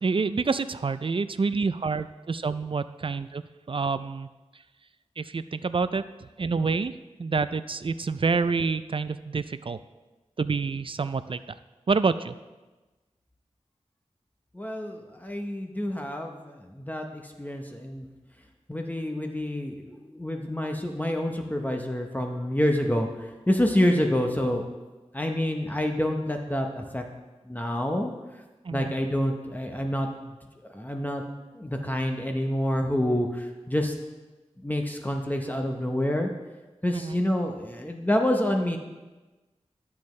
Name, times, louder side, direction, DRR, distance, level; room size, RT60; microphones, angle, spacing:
voice 1, 0.0-3.4 3.7-4.3 5.2-6.9 7.2-9.8 10.4-11.4 11.9-12.4 28.6-28.9 36.9-37.2, right 4 dB, 50° right, 13 dB, 0.4 m, -27 dB
voice 2, 14.5-18.1 18.7-24.6 25.1-27.0 27.5-28.1 28.7-30.3 30.7-31.2 31.5-33.9 34.6-36.3 36.8-38.8, left 1 dB, 15° left, 3 dB, 0.9 m, -27 dB
11.5 x 7.1 x 3.2 m, 1.2 s
wide cardioid pair, 50°, 12 cm